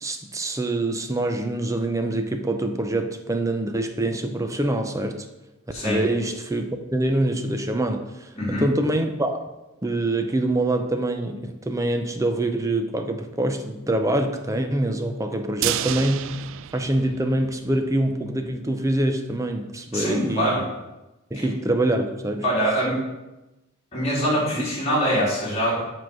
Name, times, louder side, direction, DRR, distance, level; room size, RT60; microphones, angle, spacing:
voice 1, 0.0-5.3 5.8-9.4 9.8-16.4 16.7-20.6 21.3-22.4 24.5-24.6, right 1 dB, 15° right, 6 dB, 0.6 m, -25 dB
voice 2, 8.4-8.7 19.9-20.6 21.3-21.4 22.4-23.1 23.9-25.8, equal, 30° left, -6 dB, 2.9 m, -23 dB
sound 1, 15.6-17.8 18.1-18.2 18.5-18.6, right 12 dB, 65° right, 0.3 m, -30 dB
7.2 x 3.9 x 6.1 m, 1.0 s
head